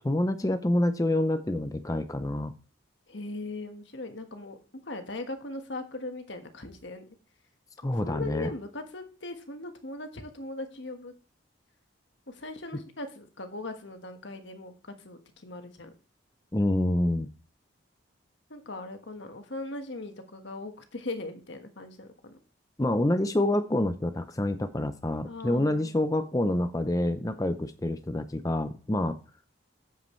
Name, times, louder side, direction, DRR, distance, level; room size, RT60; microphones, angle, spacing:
voice 1, 0.0-2.5 7.8-8.5 16.5-17.3 22.8-29.2, left 1 dB, 20° left, 9 dB, 0.5 m, -27 dB
voice 2, 3.1-4.6 4.8-7.0 7.9-11.1 12.3-15.9 18.5-22.4 25.2-25.9, left 2 dB, 70° left, 7 dB, 1.5 m, -39 dB
8.7 x 7.6 x 3.1 m, 0.38 s
head